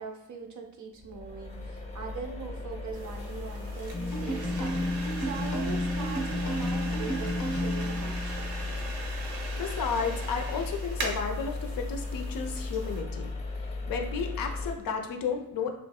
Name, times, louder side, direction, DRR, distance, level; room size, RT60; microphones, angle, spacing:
voice 1, 0.0-8.5, right 5 dB, 40° right, 3 dB, 0.6 m, -41 dB
sound 1, 1.0-14.8, left 3 dB, 15° left, 0.8 m, -36 dB
sound 2, 2.9-13.0, right 3 dB, 70° right, 0.8 m, -41 dB
sound 3, 3.9-8.8, left 1 dB, 90° left, 0.6 m, -32 dB
voice 2, 9.6-13.3 13.6-15.7, left 5 dB, 45° left, 4 dB, 0.5 m, -33 dB
3.0 x 2.6 x 2.3 m, 0.77 s
hypercardioid pair, 40°, 49 cm